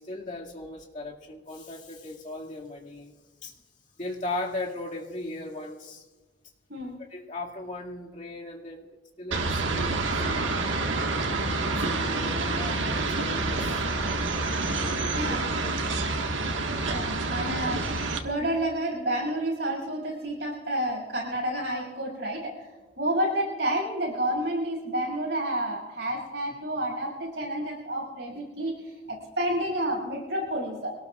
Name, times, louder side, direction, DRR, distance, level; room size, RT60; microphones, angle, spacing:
voice 1, 0.0-3.1 3.4-3.6 4.0-6.0 7.1-8.9 9.2-10.5 11.7-13.9 14.8-15.7, left 2 dB, 40° left, -2 dB, 2.2 m, -38 dB
sound 1, 9.3-18.2, right 3 dB, 85° right, 1.6 m, -28 dB
voice 2, 15.1-15.5 16.9-17.9 18.2-22.7 23.0-31.0, right 1 dB, 60° right, -1 dB, 6.4 m, -30 dB
25.0 x 18.5 x 2.4 m, 1.3 s
head